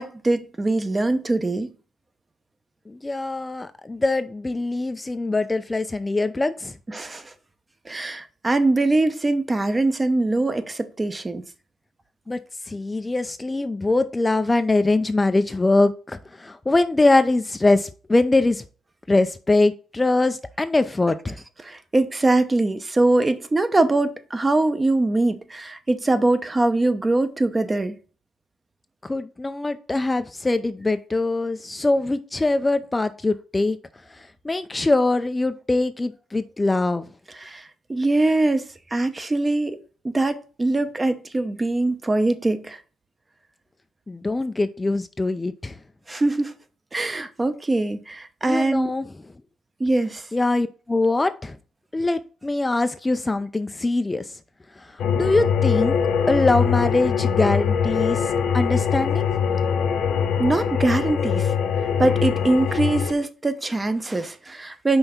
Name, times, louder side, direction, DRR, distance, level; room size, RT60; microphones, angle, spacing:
voice 1, 0.0-1.7 6.9-7.3 7.9-11.4 21.6-28.0 37.4-39.8 40.0-42.8 46.1-46.6 46.9-48.9 49.8-50.3 60.4-61.5 62.0-65.0, right 2 dB, 20° right, 0.7 m, -22 dB
voice 2, 2.9-6.8 12.3-12.4 12.7-18.6 19.1-21.4 29.0-33.8 34.1-37.1 44.1-45.8 48.4-49.1 50.3-51.6 51.9-54.4 54.8-56.0 56.3-59.3, left 2 dB, 20° left, 0.4 m, -23 dB
sound 1, 55.0-63.1, left 7 dB, 65° left, 0.7 m, -22 dB
5.4 x 3.4 x 5.6 m
cardioid pair, 90°, 0 cm